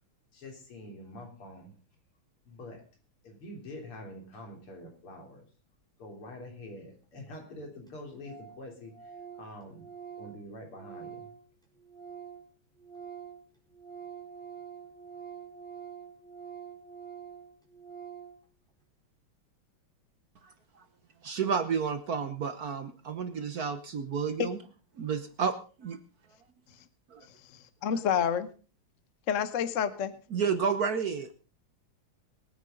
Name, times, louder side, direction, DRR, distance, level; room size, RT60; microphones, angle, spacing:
voice 1, 0.3-1.7 2.5-2.8 3.2-5.5 6.0-9.9 10.2-11.3, left 1 dB, 80° left, 4.4 m, -46 dB
Organ, 7.3-7.4 7.6-7.7 7.9-8.0 8.2-8.6 8.9-12.5 12.8-18.4, right 7 dB, ahead, 4.2 m, -46 dB
voice 2, 20.4-20.8 21.2-24.6 25.0-26.0 27.1-27.3 30.3-31.3, right 6 dB, 55° right, 1.2 m, -31 dB
voice 3, 27.8-28.5 29.3-30.1, left 8 dB, 45° left, 1.1 m, -28 dB
22.5 x 9.7 x 3.8 m
omnidirectional pair, 2.4 m